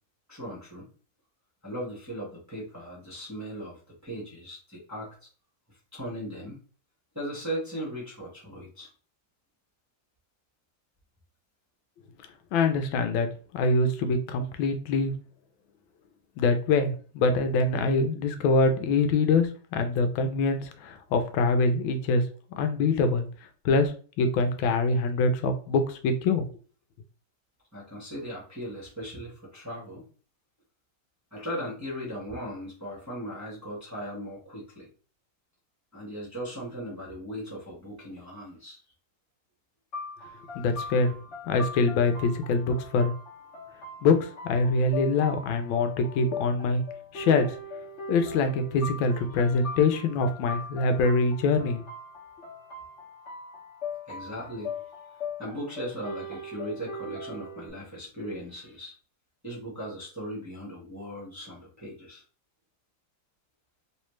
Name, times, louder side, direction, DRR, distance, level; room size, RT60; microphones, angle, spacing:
voice 1, 0.3-0.9 1.6-5.3 5.7-6.6 7.1-8.9 27.7-30.1 31.3-34.9 35.9-38.8 40.6-40.7 49.3-49.6 54.1-55.1 55.4-58.9 59.4-62.2, equal, 10° right, -6 dB, 1.0 m, -38 dB
voice 2, 12.5-13.3 13.5-15.1 16.4-22.2 22.6-23.3 23.6-26.5 40.5-41.1 41.5-43.1 44.0-46.8 47.1-47.5 48.1-51.8, left 3 dB, 85° left, 7 dB, 1.3 m, -24 dB
sound 1, 39.9-57.7, left 3 dB, 45° left, 1.0 m, -40 dB
3.2 x 3.1 x 3.1 m, 0.40 s
omnidirectional pair, 2.1 m